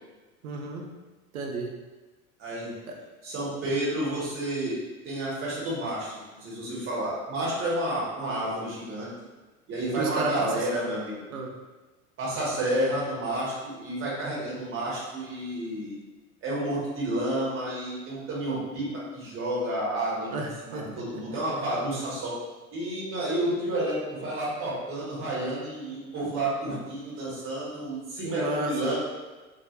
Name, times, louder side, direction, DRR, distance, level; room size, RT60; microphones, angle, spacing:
voice 1, 0.4-0.8 1.3-1.8 2.9-3.0 9.9-10.6 11.3-11.5 20.3-21.0 21.3-21.4 28.2-29.0, right 2 dB, 75° right, 1 dB, 0.6 m, -32 dB
voice 2, 2.4-2.7 3.2-4.8 5.0-9.1 9.7-11.2 12.2-15.9 16.4-20.3 20.6-22.3 22.7-29.0, right 1 dB, 30° right, -6 dB, 0.9 m, -30 dB
2.2 x 2.0 x 2.8 m, 1.2 s
hypercardioid pair, 90°, 43 cm